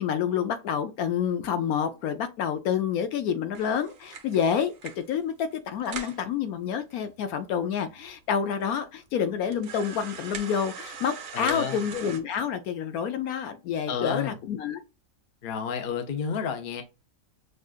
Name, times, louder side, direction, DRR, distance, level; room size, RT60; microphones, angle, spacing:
voice 1, 0.0-14.8, left 7 dB, 70° left, 1.0 m, -28 dB
sound 1, 3.6-5.1 5.5-5.6 5.9-6.2 6.9-7.0 7.2-7.3 8.0-8.1 8.6-8.7 9.4-12.2, right 6 dB, 60° right, 1.2 m, -41 dB
voice 2, 11.3-11.9 13.9-14.4 15.4-16.8, left 7 dB, 45° left, 0.6 m, -31 dB
6.3 x 2.4 x 2.4 m
omnidirectional pair, 1.7 m